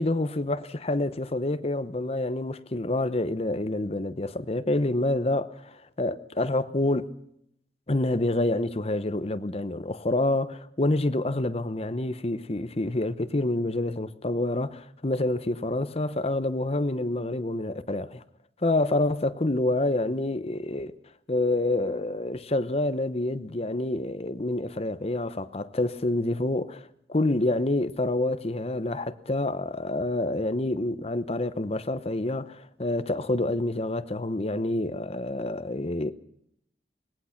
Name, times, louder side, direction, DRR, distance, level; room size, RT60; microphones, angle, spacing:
voice 1, 0.0-7.1 7.9-18.2 18.6-20.9 21.3-36.1, left 2 dB, 35° left, 0.9 m, -27 dB
25.5 x 19.0 x 5.9 m
head